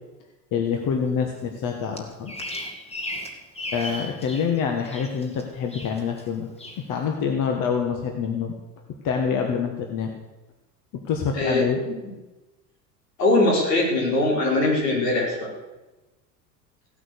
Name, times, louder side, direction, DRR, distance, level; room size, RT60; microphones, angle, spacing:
voice 1, 0.5-2.3 3.7-6.5 6.8-8.6 9.0-10.1 10.9-11.8, left 6 dB, 40° left, 3 dB, 1.9 m, -26 dB
Bird vocalization bird call bird song, 2.0-4.5 4.8-5.4 5.7-6.2 6.6-6.8, left 1 dB, 10° left, 2.3 m, -35 dB
voice 2, 11.3-11.9 13.2-15.5, left 2 dB, 70° left, -2 dB, 5.7 m, -21 dB
16.5 x 8.6 x 6.9 m, 1.1 s
figure-of-eight pair, 85°, 50 cm